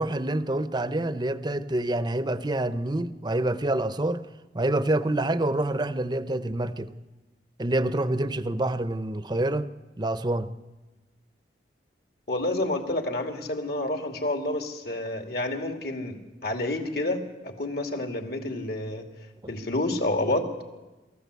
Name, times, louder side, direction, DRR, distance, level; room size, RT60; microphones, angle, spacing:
voice 1, 0.0-4.2 4.5-6.9 7.6-9.7 10.0-10.5 19.4-19.5, right 1 dB, 25° right, 12 dB, 0.8 m, -27 dB
voice 2, 12.3-19.0 19.5-20.5, left 1 dB, 60° left, 4 dB, 2.6 m, -29 dB
27.5 x 14.5 x 8.3 m, 1.2 s
head